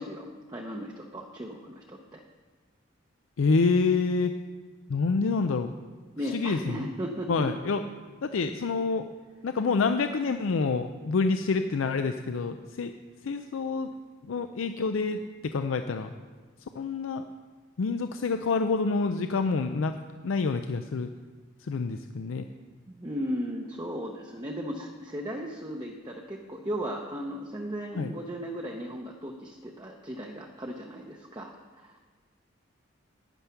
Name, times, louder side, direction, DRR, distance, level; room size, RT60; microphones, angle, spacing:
voice 1, 0.0-2.2 6.2-7.5 22.9-31.9, equal, 20° right, 0 dB, 0.7 m, -36 dB
voice 2, 3.4-4.3 4.9-5.7 6.2-6.9 7.3-7.8 8.2-9.1 9.4-12.9 13.2-13.9 14.2-16.1 16.7-17.2 17.8-20.0 20.2-21.1 21.6-22.4 28.0-28.1, left 4 dB, 85° left, 8 dB, 0.5 m, -27 dB
9.7 x 9.0 x 5.8 m, 1.4 s
head